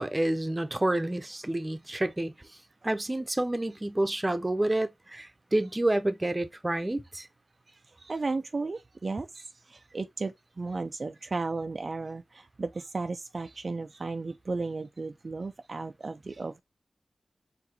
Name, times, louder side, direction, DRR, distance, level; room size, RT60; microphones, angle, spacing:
voice 1, 0.0-2.3 2.8-7.3, right 1 dB, 25° right, 0.7 m, -29 dB
voice 2, 8.0-16.6, right 3 dB, 55° right, 0.3 m, -34 dB
4.8 x 3.2 x 2.9 m
cardioid pair, 55°, 0 cm